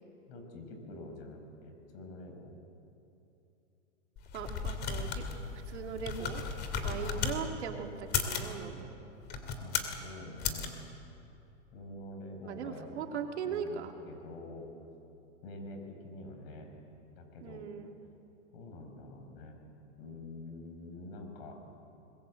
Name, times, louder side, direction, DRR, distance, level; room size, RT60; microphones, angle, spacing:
voice 1, 0.3-2.6 7.0-7.5 9.6-10.7 11.7-13.1 13.4-14.7 15.4-16.7 17.1-17.7 18.5-19.6 20.0-21.6, left 2 dB, 55° left, 5 dB, 5.9 m, -46 dB
sound 1, 4.2-7.4 8.0-8.5 9.2-10.0 10.4-10.7, left 6 dB, 30° left, 2.6 m, -35 dB
voice 2, 4.3-5.2 5.5-6.4 6.8-8.9 12.4-13.9 17.4-17.9, right 7 dB, 70° right, 3 dB, 2.9 m, -39 dB
25.0 x 21.0 x 7.9 m, 2.8 s
hypercardioid pair, 135°, 35 cm